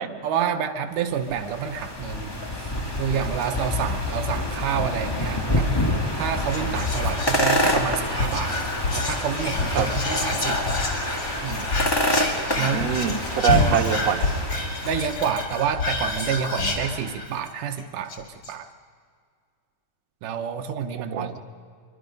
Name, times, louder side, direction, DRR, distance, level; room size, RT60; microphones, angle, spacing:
voice 1, 0.2-2.3 2.6-2.7 3.0-5.7 6.1-8.6 8.9-10.6 11.4-11.7 12.5-13.0 13.5-13.8 14.8-18.7 20.2-21.4, right 8 dB, 85° right, 5 dB, 2.4 m, -28 dB
sound 1, 1.1-15.1, left 1 dB, 10° left, 1.1 m, -27 dB
Whispering, 6.4-17.5 17.8-17.9 18.1-18.5, left 2 dB, 35° left, 2.3 m, -28 dB
voice 2, 12.6-14.3 20.9-21.3, right 8 dB, 60° right, 2 dB, 2.4 m, -24 dB
25.5 x 24.0 x 5.3 m, 2.1 s
omnidirectional pair, 3.6 m